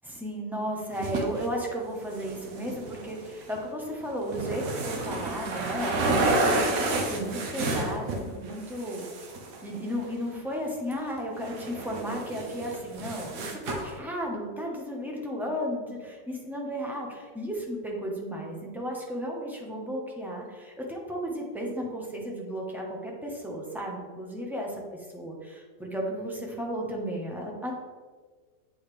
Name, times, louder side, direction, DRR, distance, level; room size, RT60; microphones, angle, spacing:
voice 1, 0.0-9.1 9.6-27.7, equal, ahead, -1 dB, 0.7 m, -34 dB
sound 1, 0.9-1.5 2.0-3.6 4.1-8.2 8.5-10.0 10.9-11.0 11.4-13.9, right 2 dB, 70° right, 1.2 m, -30 dB
7.9 x 4.2 x 3.3 m, 1.5 s
omnidirectional pair, 1.6 m